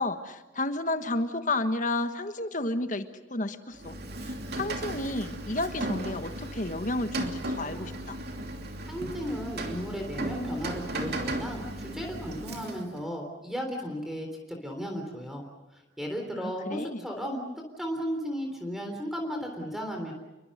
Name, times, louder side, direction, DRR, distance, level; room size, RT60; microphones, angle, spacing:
voice 1, 0.0-4.0 4.2-8.2 16.4-17.0, left 2 dB, 40° left, 9 dB, 1.4 m, -31 dB
Rain, 3.7-13.0, right 1 dB, 55° right, 2.9 m, -36 dB
voice 2, 8.9-15.4 15.7-17.4 17.8-20.1, equal, ahead, 2 dB, 3.6 m, -35 dB
29.0 x 23.0 x 6.7 m, 1.1 s
head